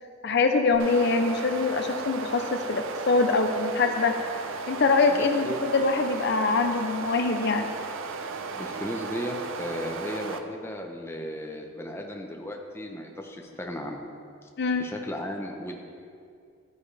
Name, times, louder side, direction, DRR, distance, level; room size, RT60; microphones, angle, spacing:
voice 1, 0.2-4.1 4.7-7.7 14.6-14.9, left 3 dB, 55° left, 5 dB, 0.6 m, -24 dB
sound 1, 0.7-10.4, right 4 dB, 70° right, 0.6 m, -35 dB
voice 2, 5.1-5.6 8.6-14.0 14.8-15.8, equal, 10° left, 1 dB, 0.8 m, -35 dB
13.5 x 9.8 x 3.3 m, 2.4 s
head